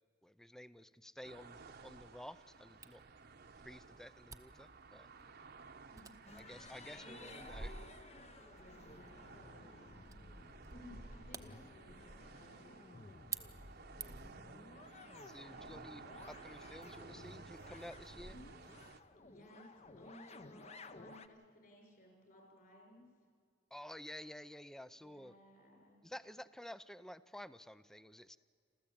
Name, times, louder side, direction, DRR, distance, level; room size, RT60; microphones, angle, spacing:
voice 1, 0.2-3.0 3.6-5.1 6.4-7.7 15.3-18.4 23.7-25.3 26.0-28.4, left 1 dB, 5° left, 15 dB, 0.5 m, -52 dB
sound 1, 1.2-19.0, right 3 dB, 55° right, 1.0 m, -54 dB
Camera, 2.8-14.4, right 6 dB, 20° right, 0.9 m, -54 dB
voice 2, 5.9-7.5 8.5-10.0 10.7-12.8 19.2-23.1 25.0-26.0, left 1 dB, 50° left, 1 dB, 6.0 m, -59 dB
sound 2, 6.3-21.3, left 3 dB, 35° left, 0.8 m, -56 dB
28.0 x 14.0 x 8.7 m, 2.1 s
head